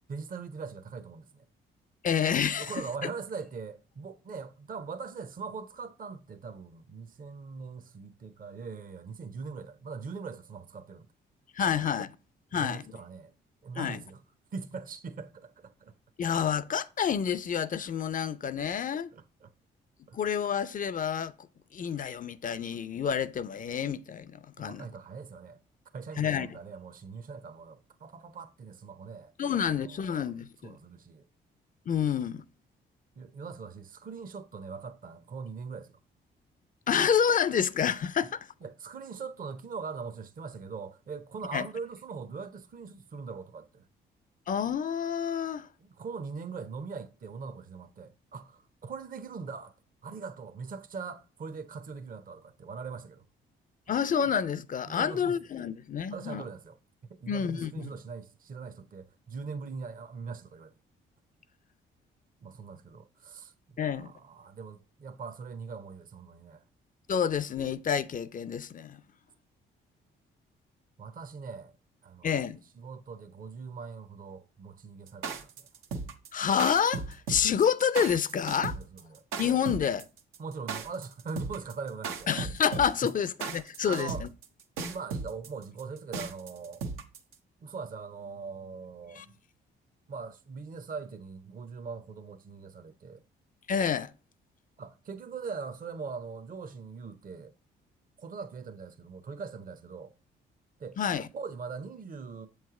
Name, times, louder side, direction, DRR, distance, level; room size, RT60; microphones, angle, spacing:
voice 1, 0.1-1.5 2.6-11.1 11.8-11.9 12.5-13.3 13.6-14.2 14.5-15.9 19.1-19.5 20.1-20.2 24.6-25.6 25.9-29.3 29.6-30.3 30.6-31.3 33.2-36.0 38.6-43.8 45.8-49.7 50.0-53.2 54.9-55.4 56.1-56.8 57.2-60.7 62.4-66.6 71.0-71.7 72.0-72.3 72.8-75.7 78.6-79.2 80.4-82.5 83.0-83.1 83.8-84.2 84.9-86.8 87.6-89.4 90.1-93.2 94.8-97.5 98.2-100.1 100.8-101.0 101.3-102.5, right 5 dB, 40° right, 0.7 m, -41 dB
voice 2, 2.0-2.7 11.5-12.2 12.5-12.9 13.8-14.0 16.2-19.1 20.1-21.3 21.7-24.9 26.2-26.5 29.4-30.8 31.9-32.4 36.9-38.5 41.5-41.7 44.5-45.7 53.9-56.4 57.3-57.9 63.8-64.1 67.1-69.0 72.2-72.6 76.3-78.8 79.4-80.1 82.3-84.3 89.1-89.3 93.7-94.1 101.0-101.3, left 7 dB, 40° left, 0.5 m, -28 dB
sound 1, 75.1-87.3, right 4 dB, 85° right, 0.8 m, -36 dB
7.5 x 3.2 x 4.7 m
supercardioid pair, 65°, 21 cm